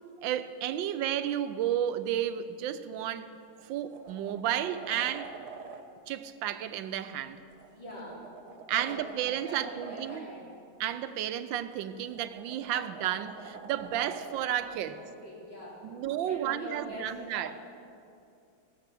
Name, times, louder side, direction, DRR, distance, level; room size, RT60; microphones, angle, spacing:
voice 1, 0.2-3.3 3.7-5.3 6.1-7.4 8.7-10.3 10.8-14.9 15.8-17.5, right 11 dB, 80° right, 11 dB, 1.3 m, -32 dB
sound 1, 2.9-3.1 3.5-5.8 7.5-10.2 11.7-14.5 16.8-16.9, right 5 dB, 60° right, 1.4 m, -46 dB
voice 2, 7.7-8.2 8.7-9.1 9.4-10.5 14.6-15.8 16.2-17.5, left 1 dB, 90° left, -8 dB, 5.2 m, -44 dB
17.5 x 7.3 x 6.8 m, 2.5 s
omnidirectional pair, 2.1 m